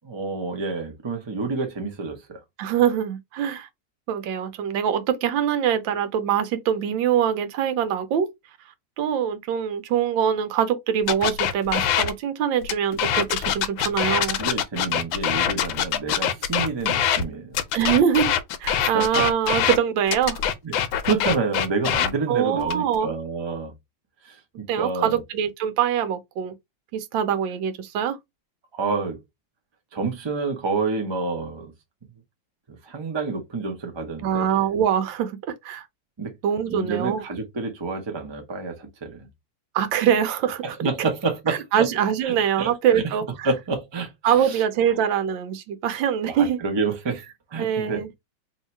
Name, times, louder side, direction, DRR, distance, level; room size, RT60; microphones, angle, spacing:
voice 1, 0.0-2.4 14.4-17.6 18.9-19.2 20.6-20.7 21.0-23.7 24.2-25.2 28.7-29.2 29.9-31.7 32.7-34.5 36.2-36.3 36.7-39.3 40.6-41.9 42.2-43.0 43.4-44.1 44.4-44.6 46.3-47.2 47.5-48.0, right 4 dB, 30° right, 0.4 m, -28 dB
voice 2, 2.6-3.7 4.1-8.3 9.0-14.4 17.7-18.3 18.6-20.4 22.3-23.1 24.7-26.6 26.9-28.2 34.2-35.9 36.4-37.2 39.7-40.8 41.5-43.5 44.2-46.6 47.6-48.1, right 9 dB, 85° right, 1.4 m, -23 dB
sound 1, 11.1-12.1 12.6-17.2 17.5-19.8 20.1-22.1 22.6-23.0, left 9 dB, 90° left, 1.4 m, -23 dB
3.1 x 2.8 x 4.3 m
omnidirectional pair, 2.0 m